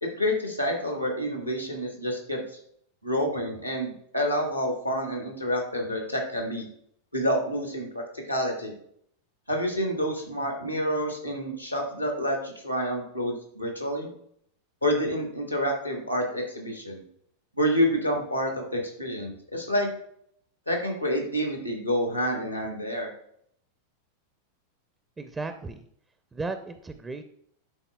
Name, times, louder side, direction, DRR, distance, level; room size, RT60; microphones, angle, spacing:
voice 1, 0.0-2.6 3.0-6.7 7.1-8.7 9.5-14.1 14.8-17.0 17.6-19.9 20.7-23.1, equal, 90° left, 2 dB, 1.3 m, -28 dB
voice 2, 25.2-25.9 26.3-27.2, right 3 dB, 15° right, 8 dB, 0.4 m, -35 dB
11.0 x 4.0 x 2.2 m, 0.67 s
figure-of-eight pair, 90°, 0 cm